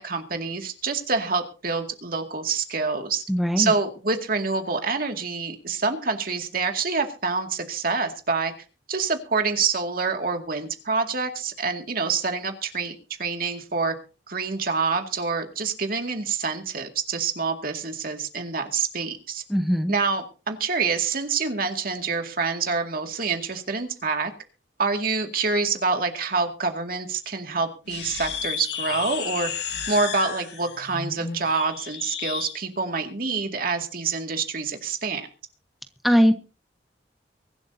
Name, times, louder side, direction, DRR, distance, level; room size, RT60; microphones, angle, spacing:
voice 1, 0.0-3.2 3.6-8.5 8.9-12.9 13.2-13.9 14.3-19.4 19.9-24.3 24.8-29.5 29.9-35.3, right 4 dB, 55° right, 5 dB, 2.2 m, -26 dB
voice 2, 3.3-3.7 19.5-19.9 36.0-36.3, equal, ahead, 7 dB, 0.9 m, -20 dB
sound 1, 27.9-32.6, left 7 dB, 70° left, 2.4 m, -33 dB
23.5 x 12.0 x 2.8 m, 0.34 s
head